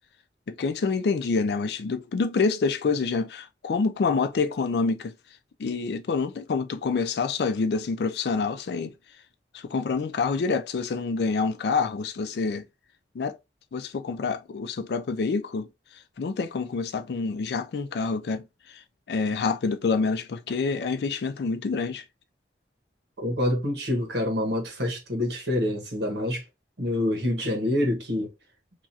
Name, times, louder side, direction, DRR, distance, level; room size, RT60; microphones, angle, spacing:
voice 1, 0.5-5.1 5.6-8.9 9.5-12.7 13.1-13.3 13.7-15.7 16.2-18.4 18.7-18.8 19.1-22.0, left 4 dB, 70° left, 0.4 m, -27 dB
voice 2, 23.2-26.4 26.8-28.3, left 1 dB, 85° right, 1.1 m, -26 dB
2.9 x 2.4 x 2.7 m
head